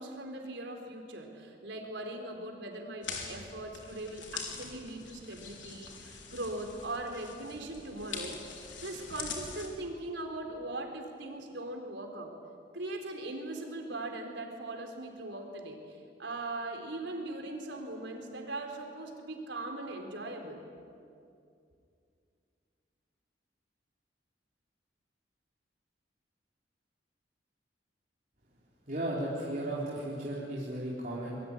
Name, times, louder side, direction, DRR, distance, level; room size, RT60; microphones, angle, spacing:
voice 1, 0.0-8.4 8.8-12.4 12.7-20.6, right 2 dB, 80° right, 3 dB, 4.1 m, -40 dB
sound 1, 3.0-9.7, left 5 dB, 85° left, 4.3 m, -43 dB
voice 2, 28.9-31.4, right 1 dB, 45° right, -6 dB, 4.1 m, -35 dB
25.5 x 22.5 x 10.0 m, 2.4 s
head